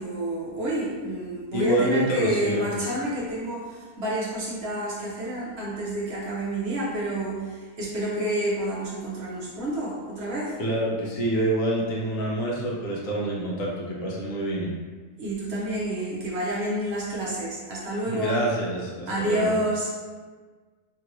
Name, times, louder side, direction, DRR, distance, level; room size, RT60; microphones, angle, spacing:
voice 1, 0.0-10.6 15.2-18.4 19.1-19.9, right 1 dB, 60° right, -5 dB, 0.7 m, -29 dB
voice 2, 1.5-2.7 10.6-14.7 18.1-19.5, right 1 dB, 65° left, -4 dB, 1.1 m, -26 dB
3.0 x 2.4 x 3.0 m, 1.4 s
omnidirectional pair, 1.6 m